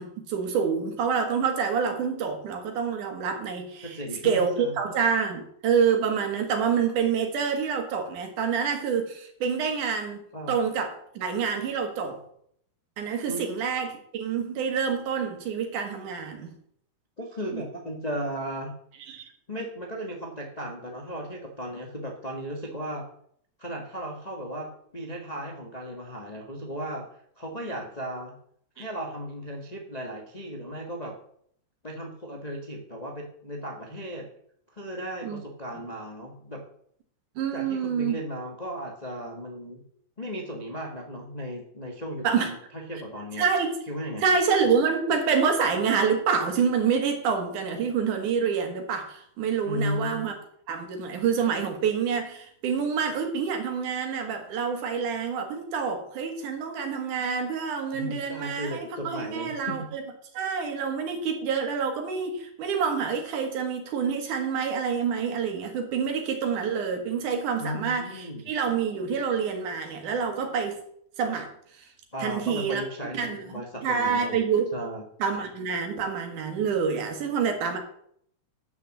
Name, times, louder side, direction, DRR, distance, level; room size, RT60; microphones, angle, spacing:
voice 1, 0.0-4.0 4.2-10.2 10.5-12.2 13.0-16.5 17.5-17.6 19.1-19.2 28.8-28.9 35.2-35.4 37.4-38.2 42.2-42.5 43.4-43.7 44.2-50.3 50.7-60.0 60.3-70.8 71.2-71.8 72.2-72.8 73.1-73.4 73.8-74.7 75.2-77.8, right 6 dB, 85° right, 4 dB, 3.2 m, -27 dB
voice 2, 3.8-4.8 10.3-10.6 13.3-13.5 17.2-18.7 19.5-23.0 23.6-27.1 27.4-28.3 28.7-31.1 31.8-34.3 34.7-36.6 37.5-39.8 40.2-43.5 43.9-44.2 49.6-50.4 57.9-59.9 67.6-68.5 72.1-75.0, equal, 60° left, 0 dB, 0.4 m, -36 dB
9.6 x 6.2 x 7.3 m, 0.67 s
omnidirectional pair, 3.5 m